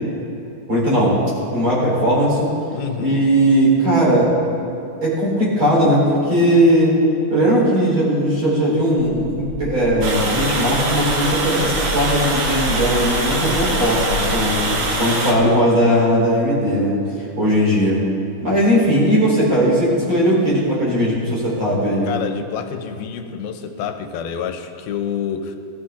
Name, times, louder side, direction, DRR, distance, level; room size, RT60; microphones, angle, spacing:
voice 1, 0.7-1.2 1.5-2.5 3.0-4.3 5.0-6.9 7.3-17.0 17.4-18.0 18.4-22.1, equal, 35° right, -6 dB, 4.7 m, -18 dB
voice 2, 2.7-3.2 22.0-25.6, left 7 dB, 85° left, 7 dB, 2.7 m, -28 dB
sound 1, 9.2-14.9, left 3 dB, 75° right, 4.4 m, -29 dB
Water, 10.0-15.3, right 2 dB, 50° right, 1.5 m, -23 dB
18.0 x 15.0 x 3.8 m, 2.9 s
omnidirectional pair, 4.2 m